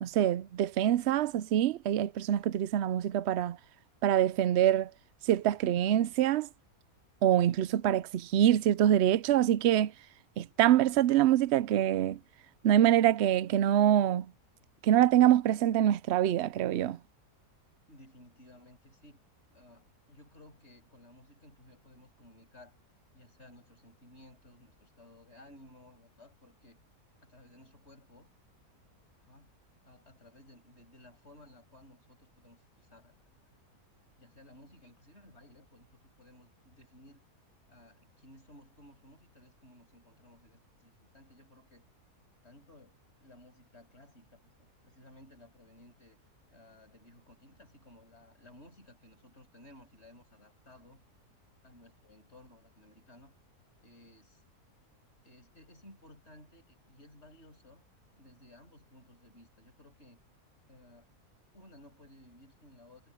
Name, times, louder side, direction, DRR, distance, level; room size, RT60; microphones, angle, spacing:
voice 1, 0.0-3.6 4.0-4.9 5.2-6.5 7.2-9.9 10.4-12.2 12.6-14.3 14.8-17.0, right 11 dB, 90° right, 0.5 m, -25 dB
voice 2, 17.9-19.2 19.5-22.8 23.1-26.8 27.2-28.3 29.2-29.5 29.8-33.2 34.2-37.2 37.7-41.8 42.4-46.2 46.5-51.0 51.6-53.3 53.8-54.4 55.2-57.8 58.2-60.2 60.7-61.2 61.5-63.1, left 1 dB, 40° left, 7.0 m, -57 dB
omnidirectional pair, 1.7 m